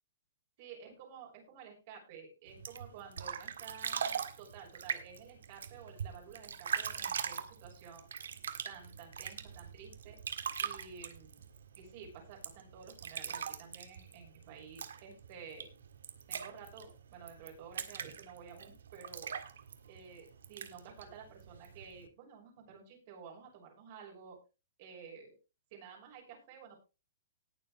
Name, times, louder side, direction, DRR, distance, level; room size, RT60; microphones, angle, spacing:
voice 1, 0.6-8.1 8.6-10.2 10.6-11.5 11.8-15.7 16.3-19.3 19.9-24.4 24.8-25.4 25.7-26.8, right 6 dB, 45° right, -1 dB, 6.1 m, -52 dB
sound 1, 2.5-22.1, right 7 dB, 90° right, 1.7 m, -42 dB
19.0 x 7.4 x 3.2 m, 0.30 s
hypercardioid pair, 155°, 0 cm